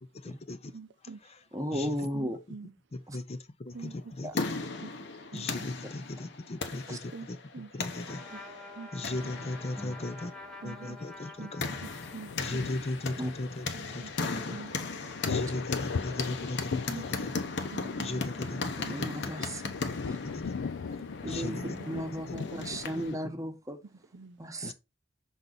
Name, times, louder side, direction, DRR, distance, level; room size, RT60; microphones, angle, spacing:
voice 1, 0.2-0.7 1.2-1.4 1.7-2.1 2.9-4.6 5.3-8.2 8.5-8.6 8.9-10.3 10.6-11.7 12.4-14.6 15.2-17.3 18.0-19.3 20.2-20.6 21.3-21.8 22.3-22.4 22.7-23.0 24.6-24.7, left 2 dB, 35° left, 0.5 m, -38 dB
voice 2, 0.7-1.2 2.1-2.7 3.7-4.1 4.8-4.9 5.3-5.5 7.1-7.3 7.5-7.7 8.3-8.4 8.7-9.5 10.6-11.0 11.3-12.6 13.7-14.1 14.5-14.7 15.3-15.4 15.9-16.0 16.9-17.1 17.7-18.3 18.8-18.9 19.6-19.7 21.5-22.1 22.3-22.8 23.8-24.4, right 4 dB, 65° right, 0.6 m, -45 dB
voice 3, 1.5-2.4 3.1-3.2 4.2-4.3 6.9-7.0 9.8-10.0 13.2-13.3 18.8-19.6 20.1-20.2 21.2-23.8 24.4-24.7, equal, 15° right, 1.0 m, -35 dB
sound 1, 3.9-23.1, left 4 dB, 65° left, 0.9 m, -38 dB
Trumpet, 8.0-12.6, left 2 dB, ahead, 1.2 m, -48 dB
sound 2, 11.8-23.1, left 5 dB, 90° left, 0.5 m, -39 dB
6.1 x 4.0 x 3.9 m
head